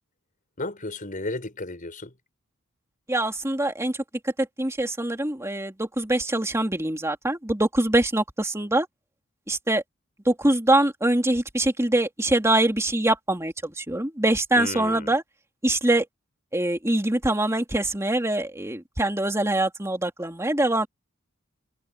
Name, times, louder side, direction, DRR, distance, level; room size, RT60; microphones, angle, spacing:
voice 1, 0.6-2.1 14.6-15.1, left 2 dB, 40° left, 6.1 m, -33 dB
voice 2, 3.1-4.0 4.2-8.9 9.5-9.8 10.2-15.2 15.6-16.1 16.5-20.9, right 1 dB, 15° right, 2.6 m, -24 dB
head